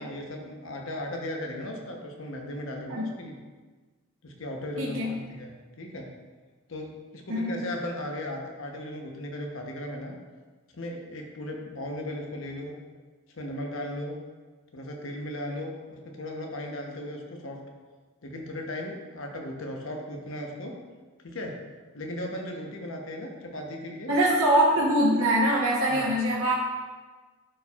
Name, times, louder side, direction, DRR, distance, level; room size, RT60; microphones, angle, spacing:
voice 1, 0.0-3.3 4.2-6.1 6.7-10.1 10.7-12.8 13.3-14.2 14.7-17.6 18.2-20.7 21.2-21.5 21.9-24.1 25.9-26.1, left 1 dB, 60° left, 1 dB, 0.9 m, -36 dB
voice 2, 4.8-5.2 7.3-7.5 24.1-26.5, right 1 dB, 60° right, -5 dB, 1.1 m, -23 dB
11.0 x 4.4 x 2.4 m, 1.4 s
head